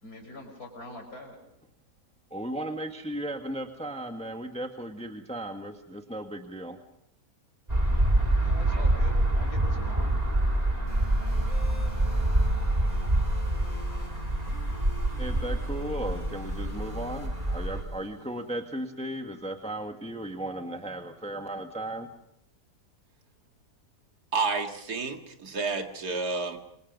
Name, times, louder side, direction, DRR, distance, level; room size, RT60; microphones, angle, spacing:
voice 1, 0.0-1.4 8.4-10.2, left 2 dB, 70° left, 3 dB, 6.5 m, -43 dB
voice 2, 2.3-6.8 15.2-22.1, right 1 dB, 5° left, 5 dB, 1.5 m, -36 dB
sound 1, 7.7-17.8, right 1 dB, 25° right, 3.4 m, -26 dB
sound 2, 10.9-18.9, left 1 dB, 50° left, 7.6 m, -44 dB
voice 3, 24.3-26.6, right 4 dB, 75° right, 5 dB, 2.6 m, -30 dB
28.0 x 26.0 x 5.3 m, 0.78 s
omnidirectional pair, 1.7 m